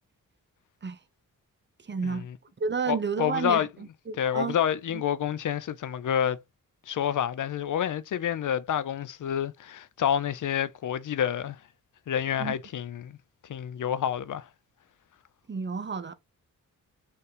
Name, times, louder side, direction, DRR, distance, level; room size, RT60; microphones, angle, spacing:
voice 1, 1.8-2.3 2.6-4.6 4.9-5.0 12.4-12.5 15.5-16.1, right 5 dB, 30° right, 0.7 m, -31 dB
voice 2, 2.9-3.7 4.2-6.4 6.9-11.6 12.1-13.2 13.5-14.5, left 9 dB, 60° left, 0.5 m, -28 dB
4.4 x 3.3 x 3.3 m
cardioid pair, 55°, 35 cm